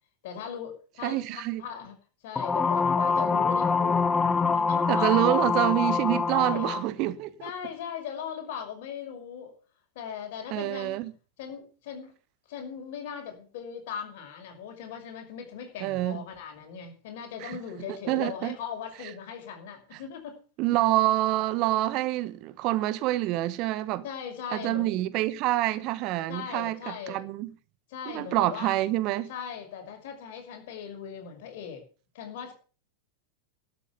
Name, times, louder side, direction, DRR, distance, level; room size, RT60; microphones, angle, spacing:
voice 1, 0.2-2.0 2.2-4.1 4.5-5.2 6.3-6.8 7.4-9.5 9.9-11.0 11.4-12.1 12.5-20.4 24.0-24.9 26.3-27.2 27.9-28.7 29.3-31.8 32.1-32.5, left 7 dB, 55° left, 5.9 m, -39 dB
voice 2, 1.0-1.6 4.9-7.3 10.5-11.1 15.8-16.2 17.4-17.6 18.1-18.6 20.6-24.0 24.5-27.5 28.1-29.3, right 16 dB, 45° right, 1.1 m, -27 dB
sound 1, 2.4-6.9, left 5 dB, 15° left, 0.8 m, -25 dB
12.5 x 8.6 x 8.5 m
figure-of-eight pair, 90°, 0 cm